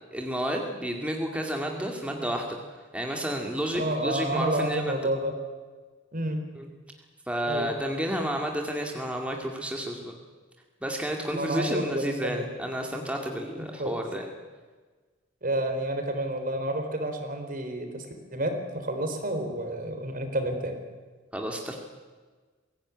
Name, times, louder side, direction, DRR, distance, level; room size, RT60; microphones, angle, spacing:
voice 1, 0.1-2.6 2.9-5.1 6.6-6.7 7.3-10.2 10.8-14.3 21.3-21.8, equal, 5° right, 1 dB, 2.2 m, -31 dB
voice 2, 3.7-5.3 6.1-6.4 7.5-7.7 11.3-12.4 13.6-14.0 15.4-18.1 18.3-20.8, right 1 dB, 45° right, 6 dB, 4.0 m, -30 dB
23.0 x 16.5 x 9.9 m, 1.4 s
head